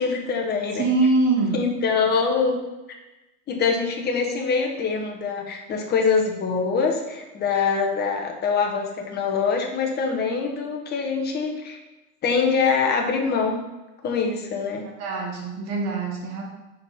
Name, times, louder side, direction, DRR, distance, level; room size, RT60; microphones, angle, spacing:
voice 1, 0.0-0.8 1.5-2.6 3.5-11.8 12.2-13.6 14.0-14.8, left 5 dB, 20° left, 1 dB, 1.0 m, -24 dB
voice 2, 0.8-1.6 14.8-16.4, right 3 dB, 35° right, 0 dB, 1.3 m, -23 dB
5.1 x 4.6 x 5.7 m, 1.1 s
supercardioid pair, 145°, 43 cm